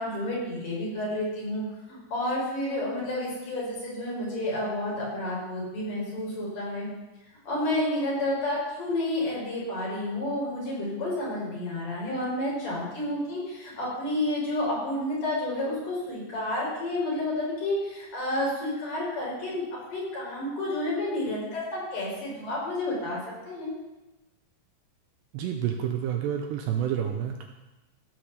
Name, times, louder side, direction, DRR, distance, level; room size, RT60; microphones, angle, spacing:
voice 1, 0.0-6.9 7.5-19.6 19.9-23.2 23.5-23.7, left 1 dB, 45° left, -5 dB, 5.3 m, -30 dB
voice 2, 25.3-27.5, right 9 dB, 80° right, 3 dB, 2.7 m, -29 dB
16.0 x 5.5 x 6.7 m, 1.0 s
omnidirectional pair, 5.4 m